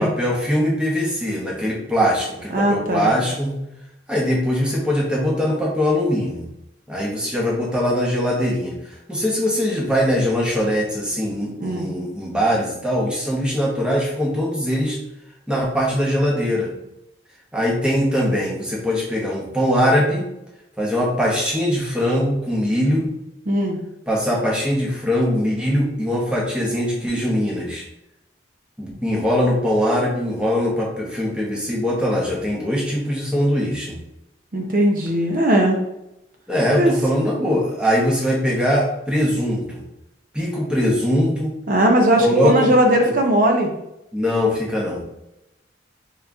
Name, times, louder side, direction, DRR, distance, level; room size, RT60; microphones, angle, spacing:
voice 1, 0.0-3.6 4.1-6.5 6.9-15.0 15.5-16.7 17.5-20.3 20.8-23.1 24.1-27.8 28.8-34.0 36.5-39.8 40.3-41.5 42.2-42.7 43.0-43.1 44.1-45.0, equal, 5° right, -3 dB, 0.8 m, -21 dB
voice 2, 2.5-3.1 11.6-11.9 23.5-23.8 34.5-35.8 36.8-36.9 41.7-43.7, right 1 dB, 45° right, 2 dB, 0.5 m, -18 dB
3.6 x 2.8 x 3.4 m, 0.86 s
head